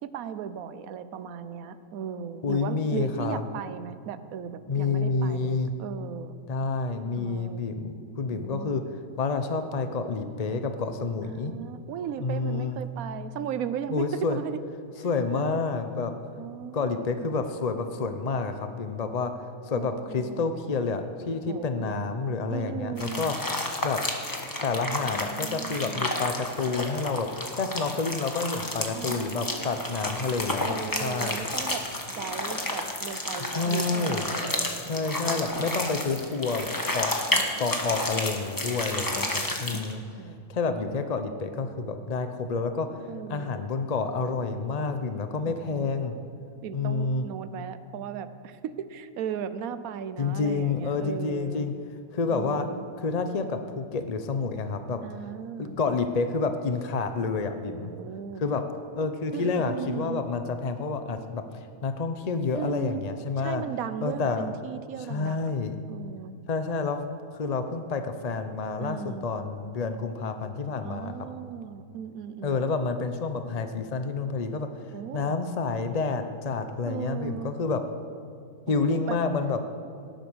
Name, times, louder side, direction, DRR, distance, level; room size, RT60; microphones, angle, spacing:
voice 1, 0.0-6.3 7.1-7.6 8.3-8.8 11.2-14.6 15.0-15.6 16.4-17.3 19.7-20.5 21.5-22.0 22.5-23.3 25.1-26.1 28.9-29.8 30.6-34.7 37.3-37.6 38.9-39.7 40.2-40.5 43.1-43.7 45.5-45.9 46.6-51.7 52.3-52.8 55.0-55.8 57.6-58.4 59.3-60.2 62.5-63.0 63.4-65.5 65.9-66.3 68.8-69.3 70.8-72.7 74.9-75.4 76.9-77.5 78.7-79.2, right 8 dB, 70° right, 12 dB, 1.1 m, -37 dB
voice 2, 2.4-3.4 4.7-5.7 6.5-8.8 9.2-11.5 12.2-12.8 13.9-14.4 15.0-16.1 16.7-19.3 19.6-23.4 23.8-24.0 24.6-27.3 27.6-31.4 33.4-34.2 34.9-37.1 37.6-40.0 40.5-43.0 43.3-46.1 46.7-47.3 50.2-51.7 52.1-52.7 53.0-55.0 55.6-57.9 58.4-58.6 58.9-63.6 64.0-64.5 65.0-65.7 66.5-67.0 67.3-71.1 72.4-74.7 75.1-77.8 78.7-79.6, left 4 dB, 40° left, 8 dB, 0.6 m, -29 dB
sound 1, 23.0-39.9, left 1 dB, 15° left, 1.2 m, -31 dB
17.5 x 10.5 x 6.3 m, 2.4 s
omnidirectional pair, 1.6 m